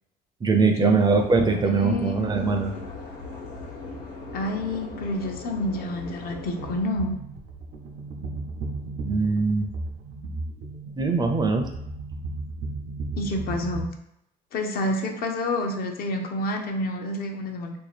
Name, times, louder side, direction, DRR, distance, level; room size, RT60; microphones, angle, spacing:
voice 1, 0.4-2.7 9.0-9.7 11.0-11.6, right 4 dB, 25° right, 4 dB, 0.4 m, -22 dB
sound 1, 1.0-6.8, left 3 dB, 80° left, 1.1 m, -39 dB
voice 2, 1.6-2.2 4.3-7.2 13.2-13.9 14.5-17.7, left 1 dB, 65° left, 3 dB, 0.6 m, -28 dB
sound 2, 6.5-13.8, right 3 dB, 80° right, 0.6 m, -35 dB
2.8 x 2.3 x 4.1 m, 0.77 s
cardioid pair, 110°, 17 cm